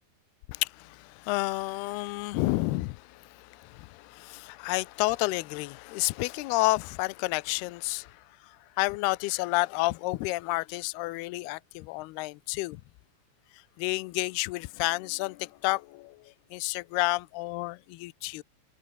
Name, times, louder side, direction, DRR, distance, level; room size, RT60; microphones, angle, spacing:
voice 1, 0.5-12.8 13.5-18.4, left 22 dB, 85° left, 2.2 m, -30 dB
omnidirectional pair, 5.6 m